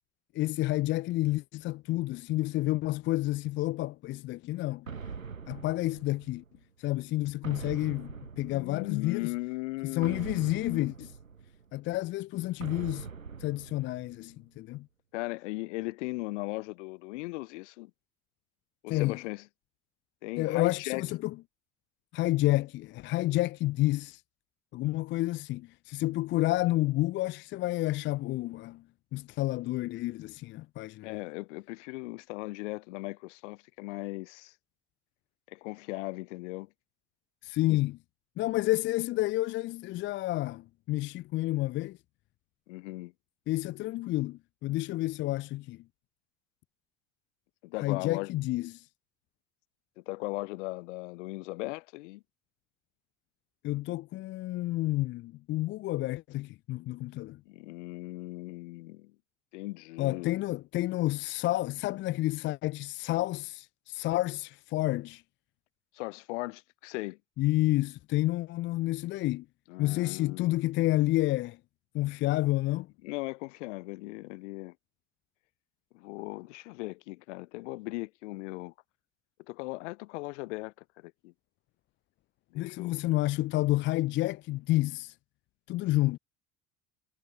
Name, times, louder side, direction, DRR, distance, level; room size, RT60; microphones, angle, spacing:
voice 1, 0.3-4.9 5.5-6.4 6.8-9.3 9.8-11.2 11.7-13.1 13.4-14.9 18.9-19.2 20.4-21.3 22.1-24.2 24.7-28.8 29.1-31.1 37.4-38.0 38.4-42.0 43.5-45.8 47.8-48.9 53.6-57.4 60.0-65.2 67.4-69.5 69.8-71.6 71.9-72.9 82.6-85.1 85.7-86.2, left 17 dB, 30° left, 0.4 m, -30 dB
sound 1, 4.9-6.6 7.4-9.2 10.0-11.8 12.6-14.4, right 5 dB, 90° right, 0.9 m, -43 dB
voice 2, 8.5-10.3 15.1-17.9 18.8-19.4 20.2-21.0 31.0-34.5 35.5-36.7 37.7-37.8 42.7-43.1 47.6-48.3 50.1-52.2 57.5-59.1 59.5-60.3 65.9-67.2 69.7-70.5 73.0-74.7 75.9-78.7 79.5-81.3 82.5-83.0, left 23 dB, 65° left, 0.7 m, -38 dB
figure-of-eight pair, 60°, 39 cm